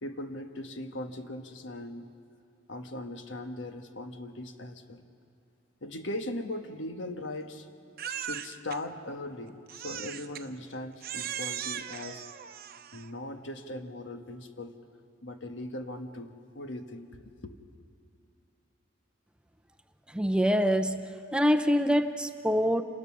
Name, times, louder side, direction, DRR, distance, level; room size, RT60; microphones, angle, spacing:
voice 1, 0.0-2.1 2.7-5.1 5.8-7.7 8.1-12.3 12.9-14.7 15.2-17.6, left 1 dB, 75° left, 6 dB, 1.4 m, -39 dB
Crying sobbing, 8.0-8.8 9.7-10.5 11.0-13.1, right 9 dB, 50° right, 0.8 m, -38 dB
voice 2, 20.1-22.8, equal, 5° right, 7 dB, 0.6 m, -25 dB
27.5 x 20.0 x 6.1 m, 2.5 s
head